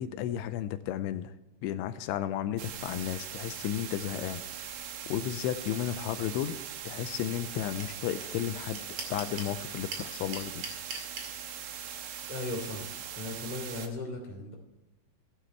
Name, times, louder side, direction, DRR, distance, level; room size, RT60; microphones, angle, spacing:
voice 1, 0.0-1.4 1.6-4.4 5.1-6.6 6.9-10.7, left 11 dB, 85° left, 11 dB, 2.9 m, -33 dB
sound 1, 2.6-13.9, right 9 dB, 70° right, 2.5 m, -41 dB
sound 2, 7.8-7.9 8.2-8.3 8.5-9.5 9.9-11.3, right 4 dB, 45° right, 2.3 m, -38 dB
voice 2, 12.3-12.9 13.1-14.5, left 2 dB, 5° right, 0 dB, 0.9 m, -37 dB
14.5 x 9.9 x 4.5 m, 0.95 s
omnidirectional pair, 5.6 m